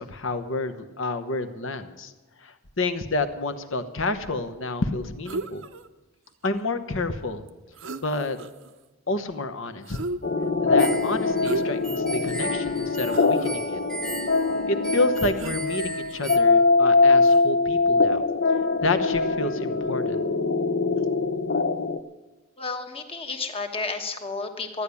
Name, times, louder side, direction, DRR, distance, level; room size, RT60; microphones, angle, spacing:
voice 1, 0.0-2.1 2.4-5.6 6.4-7.4 8.0-8.4 9.1-10.0 10.6-13.8 14.7-18.2 18.8-20.2, left 2 dB, 65° left, 9 dB, 1.1 m, -29 dB
sound 1, 5.3-5.9 7.5-7.6 7.8-8.7 9.8-10.5 11.4-11.9 12.4-12.5 13.0-13.5 15.4-16.2 17.2-17.4, right 3 dB, 60° right, 0.6 m, -34 dB
sound 2, 10.2-22.0, left 3 dB, 45° left, 0.7 m, -23 dB
sound 3, 10.8-16.4, right 3 dB, 5° left, 0.7 m, -37 dB
voice 2, 22.6-24.8, left 4 dB, 25° left, 5 dB, 1.2 m, -31 dB
14.0 x 10.0 x 8.3 m, 1.1 s
head